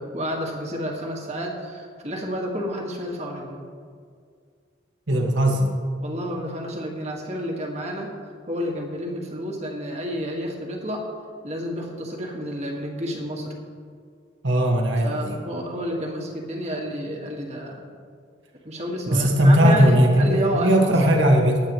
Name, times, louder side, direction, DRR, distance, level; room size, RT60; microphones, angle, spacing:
voice 1, 0.0-3.6 6.0-8.1 8.5-11.0 11.4-13.5 15.0-17.9 18.6-21.2, equal, 35° right, 0 dB, 1.7 m, -30 dB
voice 2, 5.1-5.7 14.4-15.4 19.1-21.6, equal, 75° right, 1 dB, 1.7 m, -18 dB
20.0 x 8.8 x 3.1 m, 2.1 s
head